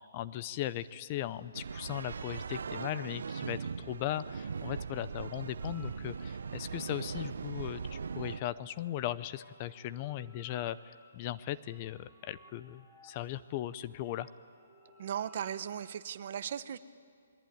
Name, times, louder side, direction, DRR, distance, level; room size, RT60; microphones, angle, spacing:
voice 1, 0.1-14.3, left 13 dB, 30° left, 15 dB, 0.6 m, -38 dB
sound 1, 1.5-8.4, right 5 dB, 75° right, 0.7 m, -39 dB
sound 2, 5.6-15.9, left 1 dB, 5° left, 3.3 m, -60 dB
voice 2, 15.0-16.8, right 9 dB, 45° right, 13 dB, 1.0 m, -37 dB
28.0 x 21.5 x 9.4 m, 2.2 s
hypercardioid pair, 165°, 0 cm